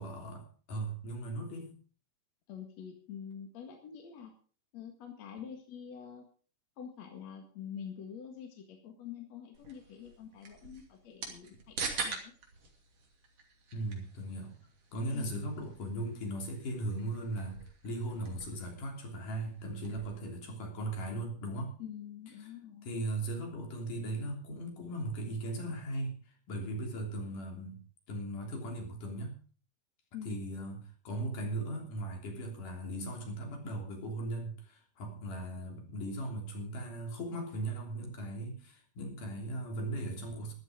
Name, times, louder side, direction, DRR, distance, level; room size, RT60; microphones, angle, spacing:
voice 1, 0.0-1.7 13.7-21.8 22.8-26.2 26.5-27.8 28.1-29.4 30.2-40.5, right 1 dB, 75° left, 2 dB, 4.9 m, -38 dB
voice 2, 2.5-4.3 4.7-6.3 6.8-12.3 15.1-15.5 21.8-22.9 30.1-30.4, left 8 dB, 55° left, 3 dB, 3.0 m, -46 dB
sound 1, 9.5-20.2, right 4 dB, 45° right, 3.6 m, -45 dB
14.0 x 12.0 x 5.1 m, 0.40 s
omnidirectional pair, 3.8 m